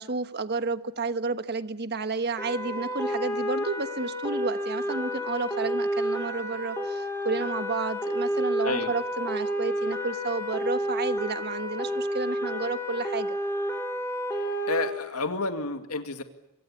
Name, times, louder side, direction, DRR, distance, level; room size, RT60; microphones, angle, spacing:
voice 1, 0.0-13.4, right 4 dB, 45° right, 11 dB, 1.4 m, -31 dB
sound 1, 2.4-14.9, equal, 10° left, 5.3 m, -30 dB
voice 2, 14.7-16.2, left 3 dB, 80° left, 7 dB, 2.2 m, -30 dB
25.0 x 24.0 x 8.5 m, 0.88 s
head